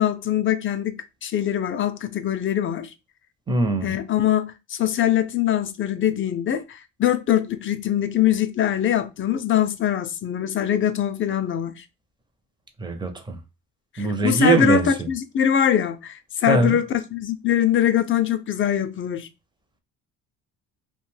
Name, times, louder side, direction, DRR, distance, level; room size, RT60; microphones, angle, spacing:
voice 1, 0.0-2.9 3.8-11.8 13.9-19.3, left 10 dB, 35° left, 0.4 m, -23 dB
voice 2, 3.5-3.9 12.8-13.4 14.0-15.1 16.4-16.8, right 3 dB, 15° right, 0.5 m, -22 dB
2.4 x 2.2 x 3.1 m
cardioid pair, 105°, 35 cm